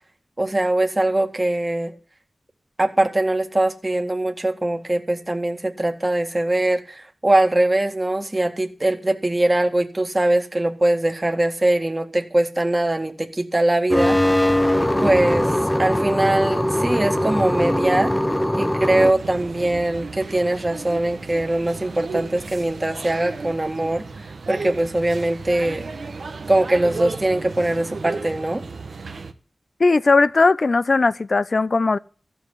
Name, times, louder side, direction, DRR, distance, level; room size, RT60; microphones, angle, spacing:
voice 1, 0.4-1.9 2.8-14.2 15.0-15.5 15.8-18.1 18.6-25.8 26.5-28.6, right 1 dB, 30° right, 1.9 m, -21 dB
sound 1, 13.9-19.1, left 1 dB, 15° left, 0.6 m, -21 dB
sound 2, 18.9-29.3, right 4 dB, 80° right, 1.3 m, -34 dB
voice 2, 29.8-32.0, left 3 dB, 60° left, 0.5 m, -18 dB
14.5 x 6.3 x 10.0 m
cardioid pair, 55°, 0 cm